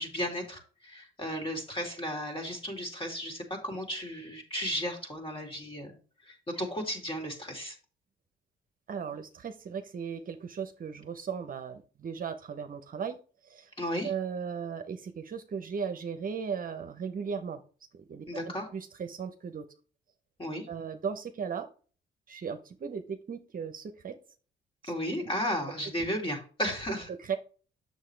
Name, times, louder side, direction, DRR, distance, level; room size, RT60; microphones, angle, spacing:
voice 1, 0.0-6.0 6.2-7.8 13.8-14.1 18.3-18.7 20.4-20.7 24.9-27.1, equal, 25° left, 2 dB, 2.7 m, -34 dB
voice 2, 8.9-13.7 14.0-17.6 18.1-18.3 18.7-19.6 20.7-21.7 22.3-24.1 24.8-24.9 25.2-25.3 27.2-27.4, right 6 dB, 45° right, 7 dB, 0.8 m, -36 dB
7.3 x 6.6 x 3.3 m, 0.38 s
cardioid pair, 90°, 20 cm